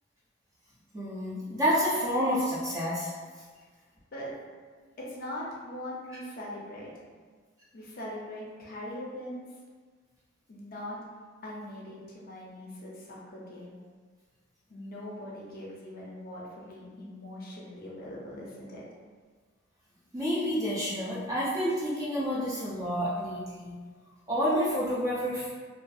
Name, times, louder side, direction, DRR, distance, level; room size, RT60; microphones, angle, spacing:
voice 1, 0.9-3.1 20.1-23.7 24.3-25.5, equal, 15° right, -8 dB, 0.4 m, -29 dB
voice 2, 5.0-7.0 7.7-9.4 10.5-11.0 11.4-13.8 14.7-18.8, left 1 dB, 45° left, -5 dB, 0.5 m, -41 dB
2.6 x 2.3 x 2.3 m, 1.5 s
head